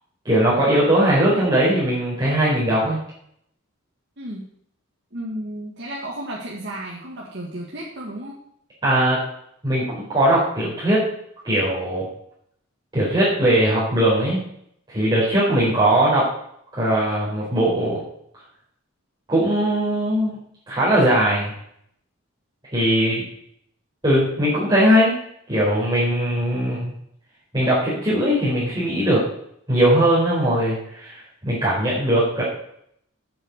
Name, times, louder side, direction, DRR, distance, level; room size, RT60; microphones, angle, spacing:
voice 1, 0.2-3.0 8.8-9.2 9.6-11.0 11.4-12.0 12.9-14.4 14.9-16.3 16.7-18.0 19.3-20.3 20.7-21.5 22.7-23.2 24.0-25.1 25.5-26.9 27.5-29.2 29.7-32.4, right 1 dB, 20° right, -9 dB, 4.2 m, -19 dB
voice 2, 4.2-4.5 5.1-8.4, right 1 dB, 55° right, -4 dB, 1.9 m, -33 dB
8.8 x 8.1 x 8.1 m, 0.72 s
head